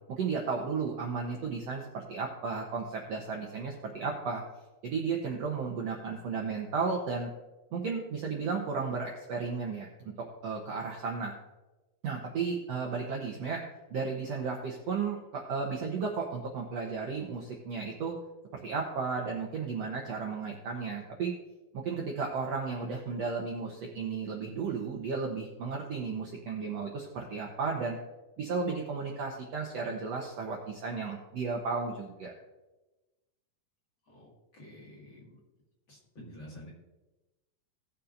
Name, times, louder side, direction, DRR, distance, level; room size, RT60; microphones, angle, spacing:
voice 1, 0.1-4.4 4.8-7.3 7.7-10.1 10.4-11.3 12.0-13.6 13.9-18.1 18.6-21.3 21.7-28.0 28.4-32.3, right 5 dB, 65° right, 0 dB, 1.7 m, -34 dB
voice 2, 34.1-35.4 35.9-36.7, left 1 dB, 40° left, -5 dB, 2.4 m, -49 dB
18.0 x 7.0 x 2.6 m, 1.1 s
omnidirectional pair, 4.2 m